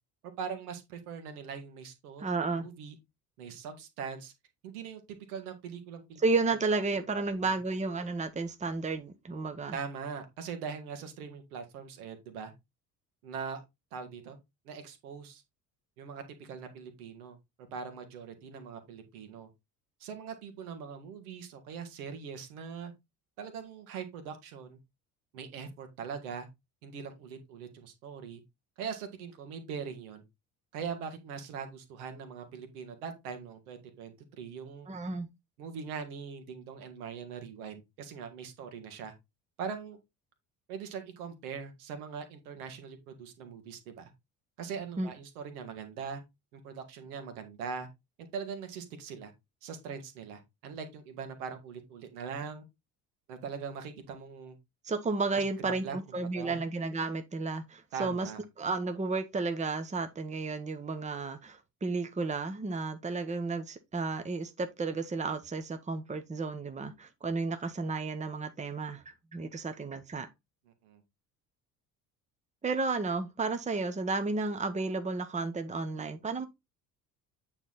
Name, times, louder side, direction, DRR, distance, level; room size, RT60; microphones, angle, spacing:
voice 1, 0.4-3.0 3.4-4.3 4.6-5.0 5.3-6.2 7.1-7.5 9.7-12.5 13.2-13.6 13.9-14.4 14.7-15.4 16.0-17.4 17.7-19.5 20.0-22.9 23.4-24.8 25.3-26.5 26.8-28.4 28.8-30.2 30.7-34.9 35.6-39.1 39.6-40.0 40.7-44.1 44.6-46.2 46.5-47.9 48.3-49.3 49.6-52.7 53.3-54.6 55.3-56.6 57.9-58.4 70.7-71.0, right 6 dB, 65° right, 2.0 m, -41 dB
voice 2, 2.2-2.7 6.2-9.8 34.9-35.3 45.0-45.1 54.8-58.3 58.6-70.3 72.6-76.5, right 3 dB, 15° right, 1.1 m, -32 dB
8.9 x 4.2 x 4.0 m
figure-of-eight pair, 55°, 47 cm